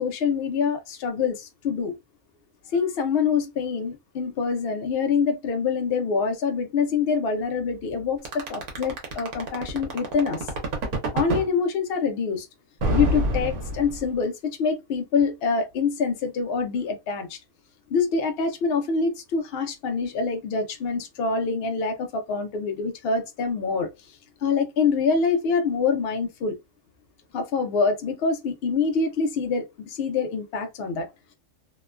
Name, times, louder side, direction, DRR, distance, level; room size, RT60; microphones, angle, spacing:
voice 1, 0.0-2.0 2.7-10.5 11.1-12.5 12.9-17.4 17.9-26.6 27.3-31.3, left 5 dB, 70° left, 0.5 m, -25 dB
sound 1, 8.3-11.5 12.8-14.2, right 1 dB, 90° right, 1.3 m, -26 dB
2.9 x 2.1 x 2.3 m
omnidirectional pair, 1.5 m